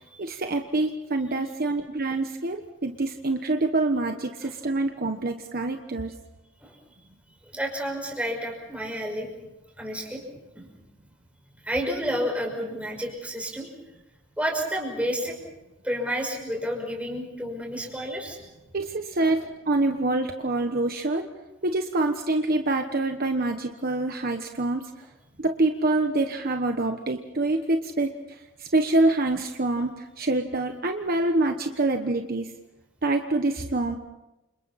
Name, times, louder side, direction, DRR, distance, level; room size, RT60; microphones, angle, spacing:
voice 1, 0.2-6.1 18.7-21.3 21.6-24.9 25.4-32.5 33.0-34.0, right 2 dB, 50° right, 5 dB, 1.2 m, -26 dB
voice 2, 7.5-9.3 9.8-10.2 10.5-10.7 11.6-13.7 14.4-15.4 15.8-18.4 19.2-19.3, equal, 5° right, 0 dB, 5.6 m, -30 dB
30.0 x 27.5 x 4.3 m, 1.0 s
head